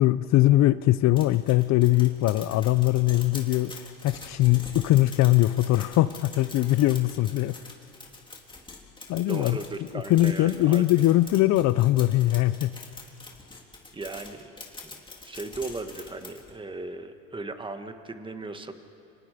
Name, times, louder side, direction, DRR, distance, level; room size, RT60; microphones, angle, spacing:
voice 1, 0.0-7.6 9.1-9.6 10.1-12.8, left 16 dB, 45° left, 15 dB, 0.6 m, -21 dB
sound 1, 1.2-16.6, left 3 dB, 10° left, 3.1 m, -45 dB
voice 2, 9.1-10.8 13.9-14.6 14.8-18.7, right 3 dB, 15° right, 8 dB, 1.6 m, -37 dB
29.0 x 26.0 x 5.1 m, 2.6 s
supercardioid pair, 115°, 38 cm